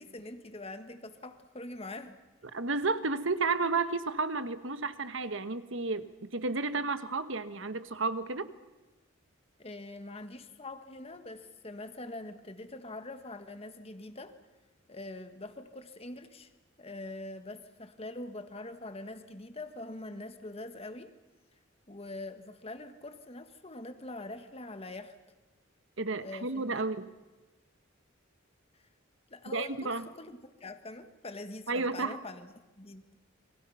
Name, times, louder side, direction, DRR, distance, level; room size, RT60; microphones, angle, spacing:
voice 1, 0.0-2.2 9.6-14.4 14.9-16.5 16.8-21.1 21.9-25.1 26.2-26.8 29.3-33.0, left 2 dB, 30° left, 9 dB, 1.6 m, -44 dB
voice 2, 2.5-8.5 26.0-27.1 29.5-30.1 31.7-32.2, right 3 dB, 65° right, 11 dB, 1.3 m, -32 dB
29.5 x 24.0 x 5.7 m, 1.1 s
head